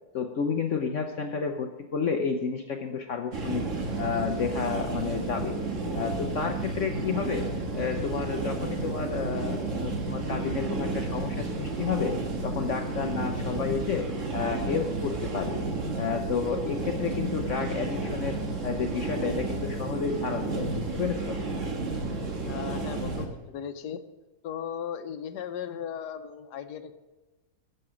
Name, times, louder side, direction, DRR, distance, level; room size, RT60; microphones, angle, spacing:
voice 1, 0.1-3.6 4.0-5.6 5.9-12.2 12.4-14.1 14.3-15.7 16.0-18.4 18.6-21.4, left 6 dB, 60° left, 5 dB, 0.9 m, -31 dB
sound 1, 3.3-23.3, right 3 dB, 50° right, 1.7 m, -32 dB
voice 2, 22.5-24.0 24.4-26.9, left 8 dB, 80° left, 8 dB, 1.3 m, -37 dB
14.0 x 6.8 x 5.0 m, 1.1 s
omnidirectional pair, 1.7 m